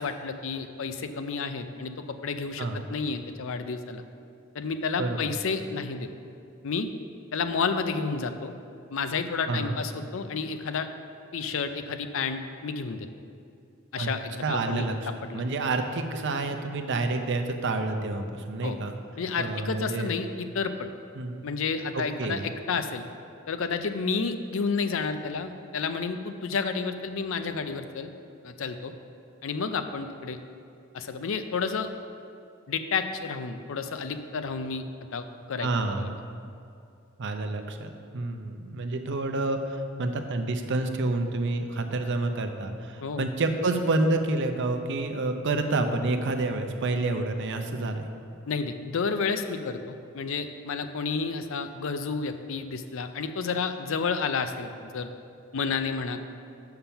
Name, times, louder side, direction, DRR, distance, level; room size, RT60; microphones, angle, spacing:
voice 1, 0.0-4.0 4.5-6.1 6.6-6.9 7.3-8.5 8.9-10.9 11.3-13.1 13.9-14.9 15.2-15.4 18.6-18.8 19.2-20.9 21.4-23.0 23.5-28.1 28.4-28.9 29.4-30.4 30.9-31.9 32.7-34.9 35.1-35.7 36.0-36.1 43.0-43.3 48.5-55.1 55.5-56.2, left 5 dB, 70° left, 9 dB, 0.5 m, -31 dB
voice 2, 5.0-5.3 9.5-9.8 14.0-14.1 14.4-14.9 15.3-18.9 19.4-20.1 21.2-21.4 21.9-22.5 35.6-36.2 37.2-48.1, right 2 dB, 60° right, 6 dB, 0.6 m, -28 dB
7.0 x 5.8 x 5.7 m, 2.5 s
head